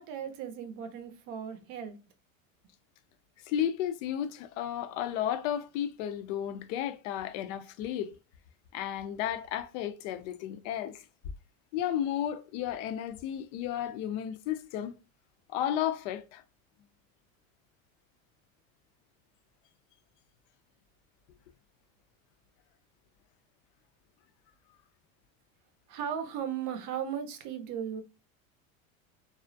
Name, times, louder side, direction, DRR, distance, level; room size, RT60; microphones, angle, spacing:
voice 1, 0.0-2.0 25.9-28.0, right 8 dB, 50° right, 0.6 m, -36 dB
voice 2, 3.5-8.1 8.7-11.0 11.7-14.9 15.5-16.4, left 10 dB, 60° left, 0.5 m, -33 dB
2.3 x 2.0 x 2.5 m
hypercardioid pair, 105°, 42 cm